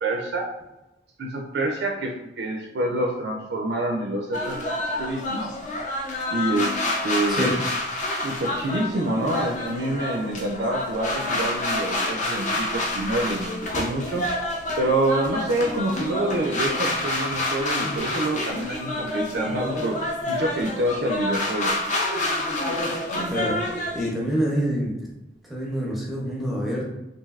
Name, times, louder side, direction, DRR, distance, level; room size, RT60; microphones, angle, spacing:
voice 1, 0.0-0.5 1.2-5.5 6.3-6.8 7.0-7.5 8.2-14.3 14.8-21.8, right 1 dB, 65° right, 1 dB, 0.3 m, -27 dB
sound 1, 4.3-24.1, left 1 dB, 45° left, 0.5 m, -28 dB
voice 2, 23.2-23.6 23.9-25.1 25.4-26.8, equal, ahead, -4 dB, 0.6 m, -26 dB
3.1 x 2.6 x 2.3 m, 0.97 s
head